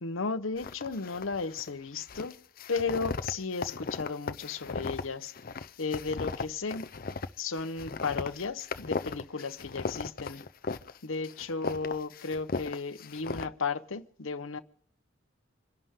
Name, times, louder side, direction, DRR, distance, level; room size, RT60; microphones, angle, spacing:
voice 1, 0.0-2.4 2.7-5.3 5.8-6.9 7.4-10.4 11.0-14.6, left 4 dB, 85° left, 0.9 m, -34 dB
sound 1, 0.6-1.7 1.9-11.0 11.2-13.5, left 4 dB, 45° left, 0.6 m, -37 dB
27.0 x 11.0 x 3.7 m
head